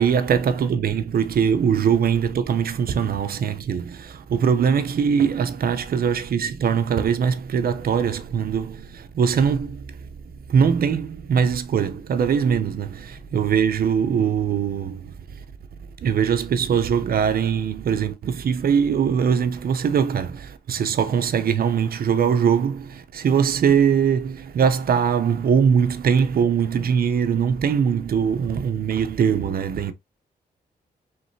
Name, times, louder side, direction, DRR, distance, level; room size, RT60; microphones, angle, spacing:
voice 1, 0.0-9.8 10.5-15.1 16.0-29.9, right 7 dB, 60° right, 0.8 m, -21 dB
4.8 x 3.2 x 2.7 m
cardioid pair, 95°, 17 cm